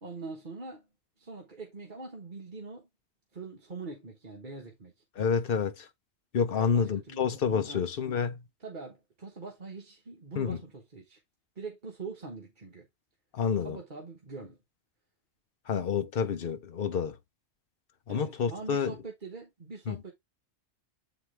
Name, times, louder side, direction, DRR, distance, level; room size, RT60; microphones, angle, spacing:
voice 1, 0.0-0.9 1.2-2.9 3.3-4.9 6.5-7.4 7.7-7.9 8.6-11.2 11.5-12.9 13.6-14.6 18.1-20.1, right 3 dB, 45° right, 1.4 m, -43 dB
voice 2, 5.2-5.8 6.3-8.4 10.4-10.6 13.3-13.8 15.7-17.2 18.1-18.9 19.9-20.0, left 6 dB, 55° left, 0.9 m, -28 dB
7.4 x 4.7 x 3.2 m
omnidirectional pair, 1.2 m